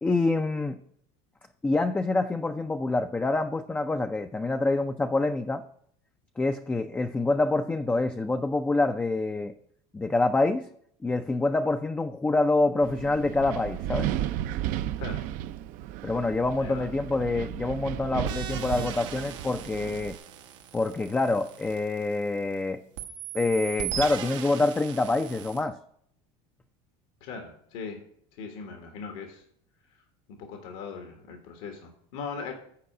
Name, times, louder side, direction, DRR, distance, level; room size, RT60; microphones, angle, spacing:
voice 1, 0.0-0.8 1.6-5.6 6.4-9.5 9.9-10.7 11.0-14.1 16.0-20.2 20.7-22.8 23.3-25.8, left 2 dB, 10° left, 7 dB, 0.4 m, -26 dB
Wind, 12.8-20.2, right 12 dB, 60° right, 0.5 m, -34 dB
voice 2, 16.6-16.9 27.2-28.0 28.3-29.4 30.4-32.5, left 5 dB, 75° left, 4 dB, 1.4 m, -39 dB
sound 1, 18.3-22.5 23.0-25.7, right 9 dB, 90° right, 1.1 m, -38 dB
8.6 x 4.6 x 6.0 m, 0.67 s
supercardioid pair, 110°, 15 cm